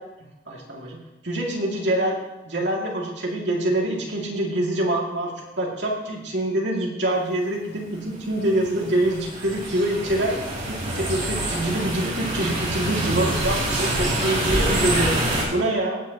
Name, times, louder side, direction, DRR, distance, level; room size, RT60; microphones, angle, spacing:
voice 1, 0.5-2.2 2.4-10.3 10.7-15.1 15.5-16.0, right 1 dB, 75° right, -2 dB, 2.5 m, -25 dB
sound 1, 8.1-15.4, right 1 dB, 45° right, 3.2 m, -26 dB
16.5 x 8.2 x 3.1 m, 0.99 s
head